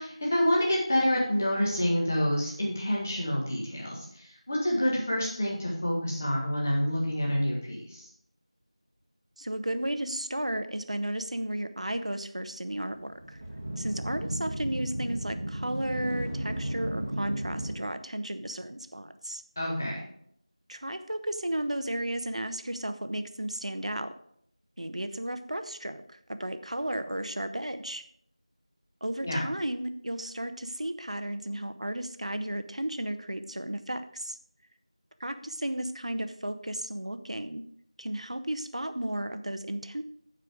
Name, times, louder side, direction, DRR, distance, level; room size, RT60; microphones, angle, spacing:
voice 1, 0.0-8.0 19.5-20.0 29.2-29.4, equal, 25° left, -4 dB, 1.7 m, -28 dB
voice 2, 9.4-13.4 13.8-19.4 20.7-24.1 24.8-28.0 29.0-34.4 35.2-37.6 38.0-40.0, right 1 dB, 75° right, 9 dB, 1.1 m, -34 dB
sound 1, 12.9-17.8, right 1 dB, 20° right, 1.4 m, -34 dB
14.0 x 4.9 x 5.0 m, 0.67 s
figure-of-eight pair, 175°, 4 cm